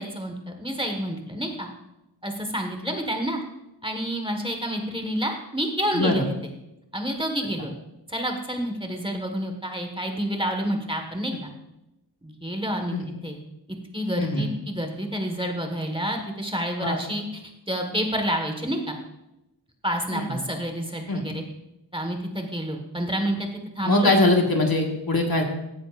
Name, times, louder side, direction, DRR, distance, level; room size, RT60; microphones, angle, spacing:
voice 1, 0.0-1.7 2.2-3.4 3.8-6.5 6.9-7.7 8.1-11.5 12.2-12.9 13.2-13.4 13.9-17.4 17.7-19.0 19.8-21.4 21.9-23.5 23.8-24.2, equal, 10° right, 3 dB, 1.6 m, -29 dB
voice 2, 5.9-6.3 12.9-13.0 14.2-14.5 16.8-17.0 20.1-20.4 21.1-21.2 23.8-25.4, left 2 dB, 55° left, 1 dB, 1.7 m, -22 dB
15.5 x 9.9 x 2.5 m, 0.90 s
wide cardioid pair, 65°, 43 cm